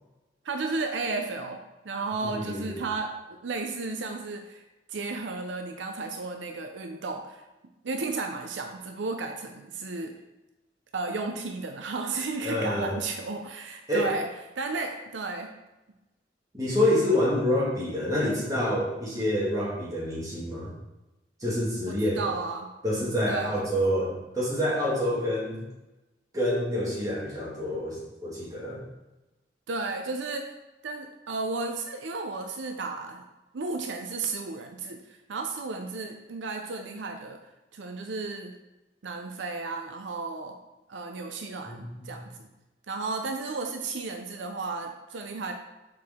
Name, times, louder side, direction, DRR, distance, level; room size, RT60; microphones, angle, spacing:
voice 1, 0.4-1.6 1.8-4.6 4.9-7.4 7.8-10.1 10.9-14.3 14.6-15.5 21.9-22.7 23.3-23.6 29.7-30.5 30.8-33.2 33.5-37.4 37.7-38.5 39.0-40.6 40.9-42.5 42.9-45.5, right 3 dB, 75° right, 4 dB, 0.5 m, -33 dB
voice 2, 2.2-2.8 12.4-13.0 13.9-14.1 16.5-20.7 21.4-22.4 22.8-25.6 26.3-28.8 41.7-42.1, left 1 dB, 20° right, -6 dB, 2.0 m, -27 dB
6.0 x 4.7 x 3.6 m, 1.0 s
head